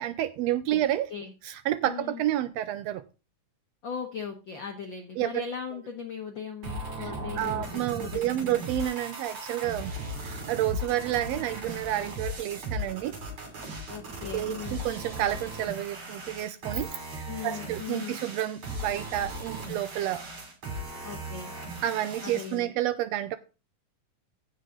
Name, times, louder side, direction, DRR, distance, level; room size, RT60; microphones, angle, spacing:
voice 1, 0.0-1.1 1.4-3.0 5.2-5.4 7.0-9.9 10.2-13.1 14.3-20.2 21.8-23.4, right 13 dB, 90° right, 12 dB, 1.4 m, -30 dB
voice 2, 1.9-2.2 3.8-8.6 13.9-14.8 17.2-18.2 21.0-21.5 22.2-22.7, left 6 dB, 60° left, 4 dB, 1.2 m, -38 dB
sound 1, 6.6-22.6, right 1 dB, 50° right, 3.9 m, -37 dB
15.5 x 5.5 x 3.8 m, 0.31 s
omnidirectional pair, 3.6 m